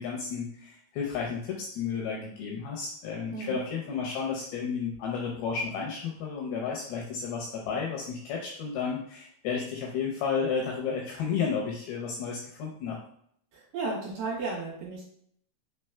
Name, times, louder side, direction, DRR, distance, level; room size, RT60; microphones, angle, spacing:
voice 1, 0.0-13.0, left 6 dB, 85° left, -1 dB, 2.2 m, -32 dB
voice 2, 13.5-15.1, right 3 dB, 70° right, -5 dB, 2.8 m, -34 dB
6.4 x 3.0 x 2.3 m, 0.66 s
omnidirectional pair, 5.1 m